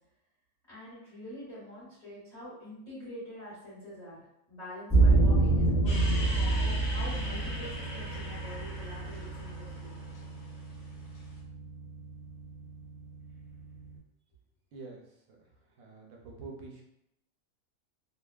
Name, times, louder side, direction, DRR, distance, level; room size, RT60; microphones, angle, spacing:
voice 1, 0.7-9.9, left 1 dB, 30° left, -10 dB, 1.4 m, -45 dB
sound 1, 4.9-14.0, right 3 dB, 5° left, 0.7 m, -29 dB
sound 2, 5.9-11.3, left 1 dB, 65° left, 0.9 m, -42 dB
voice 2, 14.7-15.0 15.8-16.8, right 4 dB, 85° right, -1 dB, 1.1 m, -45 dB
2.7 x 2.2 x 2.2 m, 0.83 s
omnidirectional pair, 1.4 m